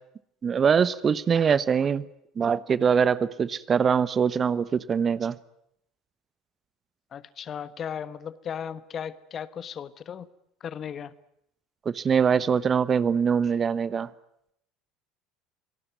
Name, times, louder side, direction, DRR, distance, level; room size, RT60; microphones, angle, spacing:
voice 1, 0.4-2.1 2.4-5.4 11.8-14.1, right 6 dB, 35° right, 1.0 m, -23 dB
voice 2, 7.1-10.3 10.6-11.1, left 8 dB, 40° left, 1.4 m, -36 dB
26.0 x 18.0 x 9.5 m
hypercardioid pair, 70°, 0 cm